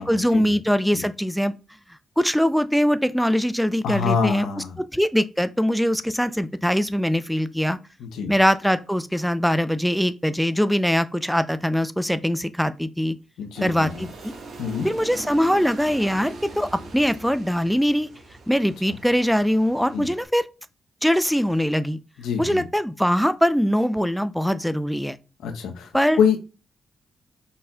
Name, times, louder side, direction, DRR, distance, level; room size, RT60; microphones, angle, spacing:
voice 1, 0.0-1.5 2.2-4.5 4.9-7.8 8.3-13.2 13.6-14.3 14.8-18.1 18.5-20.5 21.0-22.0 22.4-25.2 25.9-26.2, equal, ahead, 0.5 m, -22 dB
voice 2, 3.8-4.8 8.0-8.3 13.4-14.0 14.6-14.9 19.9-20.1 22.2-22.7 25.4-25.9 26.2-26.4, left 6 dB, 80° left, 0.9 m, -25 dB
Aircraft, 13.5-20.2, right 3 dB, 65° right, 1.5 m, -41 dB
5.4 x 4.2 x 2.3 m
hypercardioid pair, 40°, 0 cm